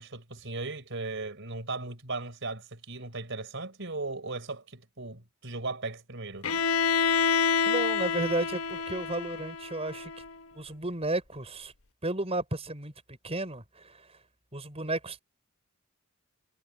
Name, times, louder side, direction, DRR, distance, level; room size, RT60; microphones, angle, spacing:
voice 1, 0.0-6.5, right 3 dB, 55° right, 4.5 m, -37 dB
Bowed string instrument, 6.4-10.3, left 5 dB, 70° left, 1.1 m, -28 dB
voice 2, 7.7-10.1 10.6-11.7 12.0-14.2 14.5-15.2, right 2 dB, 30° right, 5.4 m, -33 dB
head